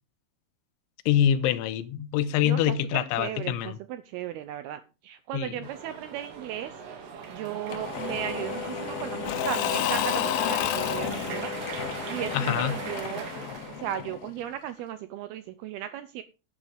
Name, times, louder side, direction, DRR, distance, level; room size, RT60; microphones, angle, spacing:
voice 1, 1.1-3.8 5.3-5.5 12.3-12.8, left 10 dB, 90° left, 3.2 m, -25 dB
voice 2, 2.4-2.8 3.2-6.7 7.3-11.5 12.1-13.3 13.8-16.2, right 11 dB, 85° right, 2.2 m, -36 dB
sound 1, 5.6-14.0, right 6 dB, 65° right, 4.1 m, -40 dB
Engine / Mechanisms / Drill, 7.7-14.4, left 9 dB, 70° left, 2.4 m, -31 dB
11.5 x 8.6 x 5.1 m
omnidirectional pair, 5.4 m